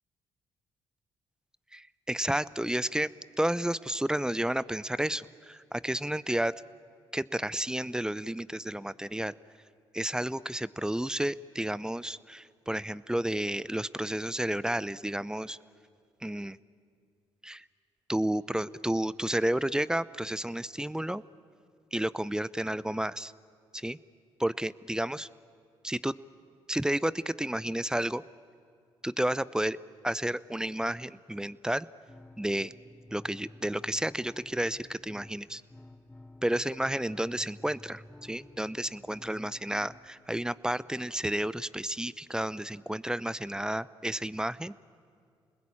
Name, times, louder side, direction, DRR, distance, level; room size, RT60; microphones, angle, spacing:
voice 1, 1.7-3.1 3.4-6.5 7.1-9.3 9.9-15.6 16.2-16.6 17.4-17.6 18.1-21.2 21.9-23.3 23.7-24.0 24.4-25.3 25.8-26.1 26.7-28.2 29.0-29.8 30.0-31.9 32.4-32.7 33.1-35.6 36.4-44.7, right 1 dB, 5° right, 19 dB, 0.7 m, -31 dB
sound 1, 32.1-40.1, left 1 dB, 15° left, 3.8 m, -52 dB
29.0 x 20.5 x 8.8 m, 2.3 s
hypercardioid pair, 50°, 11 cm